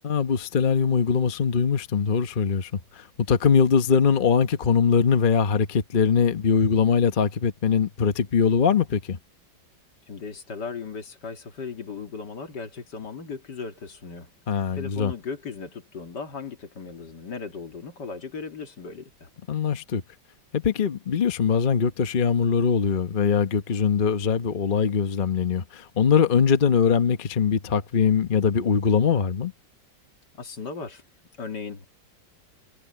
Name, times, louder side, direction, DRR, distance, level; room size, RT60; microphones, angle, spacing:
voice 1, 0.0-9.2 14.5-15.1 19.5-20.0 20.5-29.5, left 6 dB, 35° left, 0.9 m, -22 dB
voice 2, 10.1-19.3 30.4-31.0 31.4-31.9, left 5 dB, 65° left, 2.8 m, -37 dB
omnidirectional pair, 2.0 m